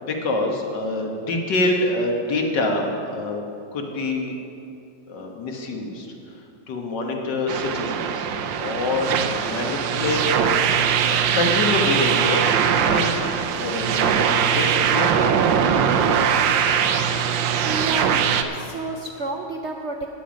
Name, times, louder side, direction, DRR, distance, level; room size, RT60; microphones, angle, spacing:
voice 1, 0.0-3.5 3.7-4.3 5.1-6.1 6.7-8.3 8.6-10.2 10.8-12.5 12.8-15.3, left 2 dB, 75° left, 2 dB, 1.9 m, -26 dB
sound 1, 7.5-18.4, right 7 dB, 85° right, 1.4 m, -21 dB
voice 2, 17.6-20.1, right 2 dB, 65° right, 2 dB, 0.7 m, -31 dB
13.0 x 9.1 x 5.1 m, 2.8 s
omnidirectional pair, 1.9 m